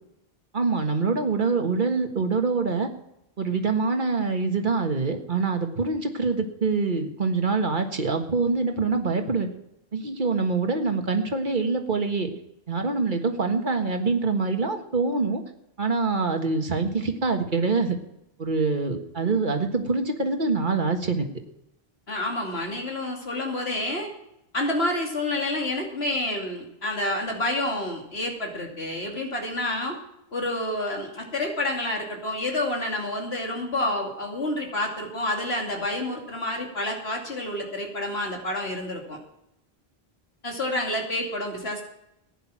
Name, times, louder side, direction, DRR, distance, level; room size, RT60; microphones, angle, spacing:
voice 1, 0.5-2.9 3.4-9.5 9.9-12.3 12.7-15.4 15.8-18.0 18.4-21.3, right 4 dB, 50° right, 5 dB, 1.7 m, -25 dB
voice 2, 22.1-24.1 24.5-30.0 30.3-39.2 40.4-41.8, left 1 dB, 85° left, 1 dB, 3.0 m, -29 dB
15.5 x 10.0 x 6.1 m, 0.84 s
omnidirectional pair, 1.0 m